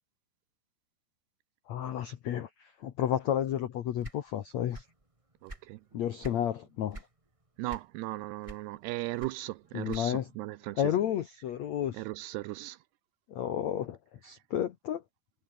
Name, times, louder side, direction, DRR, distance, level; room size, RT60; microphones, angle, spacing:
voice 1, 1.7-4.8 5.9-7.0 9.7-10.3 10.7-12.0 13.3-15.0, left 10 dB, 75° left, 1.6 m, -32 dB
sound 1, 4.0-5.0 5.3-6.5 6.9-7.2 7.7-8.1 8.4-10.3, right 2 dB, 15° right, 1.1 m, -46 dB
voice 2, 5.4-5.8 7.6-10.8 12.0-12.8, right 18 dB, 80° right, 2.6 m, -37 dB
omnidirectional pair, 5.0 m